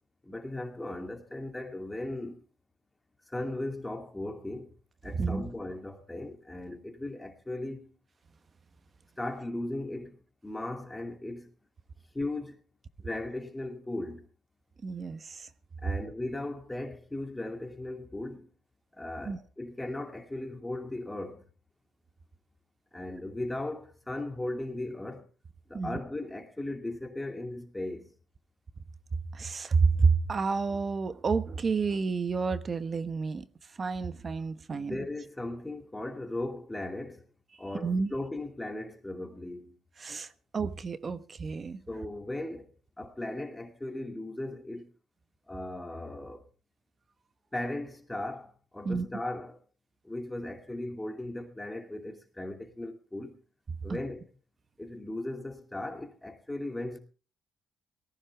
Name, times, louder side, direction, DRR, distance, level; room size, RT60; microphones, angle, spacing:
voice 1, 0.2-2.4 3.3-4.7 5.0-7.9 9.2-10.2 10.4-11.5 12.1-12.6 13.0-14.3 15.8-18.5 18.9-21.5 22.9-25.3 25.7-28.1 34.7-37.2 37.6-39.8 41.9-42.7 43.0-44.9 45.5-46.4 47.5-49.6 50.0-53.4 53.8-54.3 54.8-57.0, left 1 dB, 10° left, 2.4 m, -37 dB
voice 2, 14.8-15.5 19.2-19.4 25.7-26.0 29.3-33.4 33.8-35.0 37.8-38.1 40.0-41.8 48.8-49.1 53.9-54.0, right 4 dB, 40° right, 1.1 m, -29 dB
18.5 x 14.5 x 3.5 m
cardioid pair, 90°, 0 cm